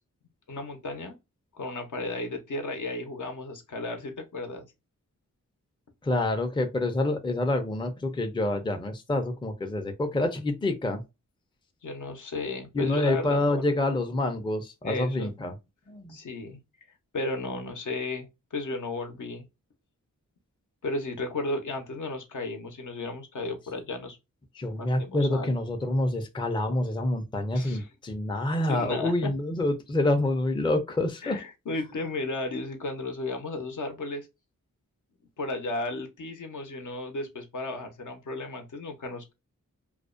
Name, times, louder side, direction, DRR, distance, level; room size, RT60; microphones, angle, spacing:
voice 1, 0.5-1.1 1.5-4.7 11.8-13.8 14.8-15.3 16.1-16.6 17.1-19.5 20.8-24.2 24.8-25.6 27.5-27.9 28.7-29.3 31.2-34.3 35.4-39.3, left 2 dB, 65° left, 0.7 m, -34 dB
voice 2, 6.0-11.0 12.7-15.5 15.9-16.2 24.6-31.4, left 2 dB, 15° left, 0.4 m, -27 dB
2.4 x 2.1 x 2.4 m
cardioid pair, 70°, 33 cm